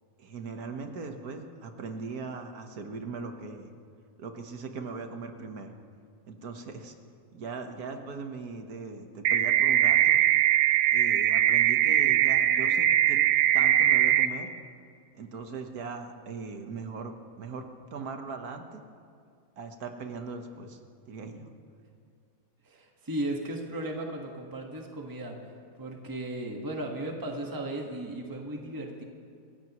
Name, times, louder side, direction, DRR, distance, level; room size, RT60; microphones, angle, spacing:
voice 1, 0.2-3.7 4.2-5.7 6.3-6.9 7.3-10.2 10.9-13.2 13.5-14.5 15.1-17.6 17.9-18.8 19.6-20.8 21.1-21.5, right 4 dB, 65° right, 5 dB, 1.7 m, -39 dB
sound 1, 9.2-14.3, right 11 dB, 90° right, 1.2 m, -22 dB
voice 2, 22.6-25.5 25.8-29.0, right 1 dB, 15° right, 1 dB, 1.4 m, -36 dB
27.5 x 15.5 x 3.1 m, 2.3 s
omnidirectional pair, 1.7 m